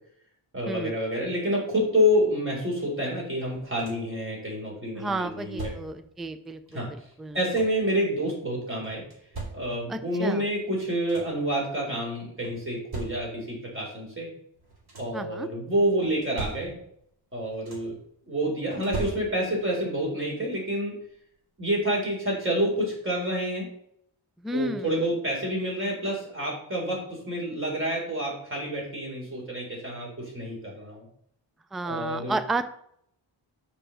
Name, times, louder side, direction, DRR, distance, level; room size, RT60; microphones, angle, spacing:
voice 1, 0.5-5.7 6.7-6.9 7.3-9.0 9.5-14.3 15.0-16.8 17.3-17.9 18.3-21.0 21.6-23.7 24.5-31.1 31.8-32.4, equal, 25° right, -3 dB, 3.8 m, -28 dB
sound 1, 3.4-4.2 5.2-6.1 7.1-7.9 8.8-10.0 10.6-10.7 10.9-11.5 12.4-13.6 14.5-15.3 16.0-17.1 17.3-18.1 18.7-19.7 21.0-21.1 21.6-21.8, right 3 dB, 50° right, 2.8 m, -40 dB
voice 2, 5.0-6.8 7.2-7.4 9.9-10.4 15.1-15.5 24.4-25.1 31.7-32.7, right 2 dB, ahead, 11 dB, 0.4 m, -32 dB
6.9 x 5.1 x 6.2 m, 0.69 s
wide cardioid pair, 150°, 48 cm